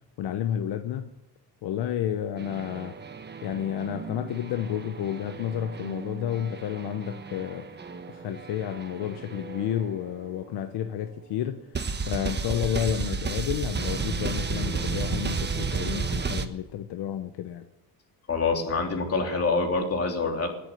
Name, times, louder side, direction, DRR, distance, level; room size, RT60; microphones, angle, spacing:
voice 1, 0.2-1.1 1.6-3.0 3.4-7.7 8.1-11.8 12.1-17.7, left 10 dB, 75° left, 1.1 m, -31 dB
sound 1, 2.4-10.8 11.7-16.5, right 5 dB, 25° right, 1.2 m, -33 dB
voice 2, 18.3-20.5, left 4 dB, 35° left, 3.3 m, -26 dB
18.5 x 8.4 x 8.2 m
cardioid pair, 120°, 41 cm